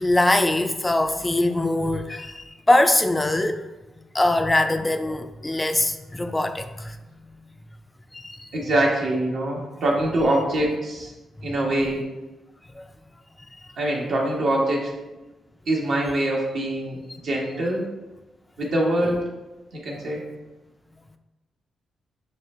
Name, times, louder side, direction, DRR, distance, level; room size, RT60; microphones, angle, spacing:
voice 1, 0.0-3.6 4.1-6.9 8.2-8.4 11.6-11.8, left 1 dB, 20° left, 0.3 m, -22 dB
voice 2, 8.5-11.1 11.4-12.0 13.8-14.9 15.7-17.0 17.2-17.9 18.6-19.2 19.7-20.2, right 1 dB, 70° right, 1.2 m, -24 dB
6.4 x 2.2 x 3.0 m
cardioid pair, 70°, 0 cm